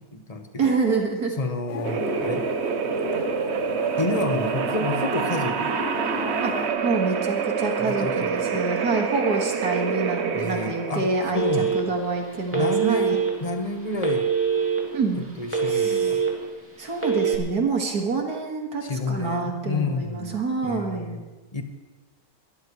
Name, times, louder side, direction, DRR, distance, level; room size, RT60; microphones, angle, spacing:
voice 1, 0.0-0.8 1.4-2.5 4.0-5.7 7.8-8.5 10.3-11.9 12.5-14.3 15.4-16.2 18.8-20.4 20.6-21.2 21.5-21.6, left 2 dB, 25° left, 5 dB, 1.2 m, -30 dB
voice 2, 0.6-1.3 6.4-6.5 6.8-11.5 11.7-13.2 14.9-15.3 15.7-16.2 16.8-21.1, right 4 dB, 85° right, 1 dB, 2.5 m, -27 dB
sound 1, 1.7-6.7, left 8 dB, 60° left, 0.9 m, -35 dB
sound 2, 1.8-16.4, right 6 dB, 55° right, 1.0 m, -27 dB
Telephone, 11.3-12.0 12.5-13.3 14.0-14.8 15.2-16.3 16.9-17.4, right 7 dB, 10° right, 2.5 m, -23 dB
22.0 x 13.0 x 3.2 m, 1.2 s
omnidirectional pair, 1.6 m